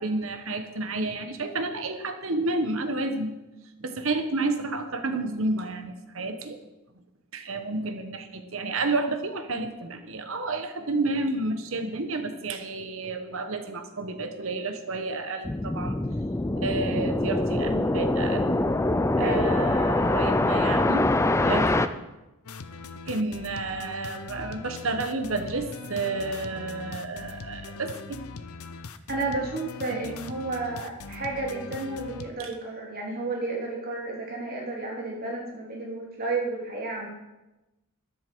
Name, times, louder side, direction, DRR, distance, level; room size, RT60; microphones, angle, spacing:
voice 1, 0.0-3.3 3.8-6.6 7.3-16.0 16.6-18.6 19.1-21.1 21.4-21.7 23.1-28.2 30.0-30.1 32.4-32.5, right 2 dB, 65° right, 7 dB, 1.3 m, -30 dB
sound 1, 15.5-21.9, left 2 dB, 15° left, 0.4 m, -24 dB
voice 2, 19.2-19.9 29.1-37.1, right 3 dB, 45° right, -2 dB, 3.3 m, -32 dB
sound 2, 22.4-32.3, left 4 dB, 85° left, 0.7 m, -41 dB
13.0 x 10.5 x 4.7 m, 1.0 s
head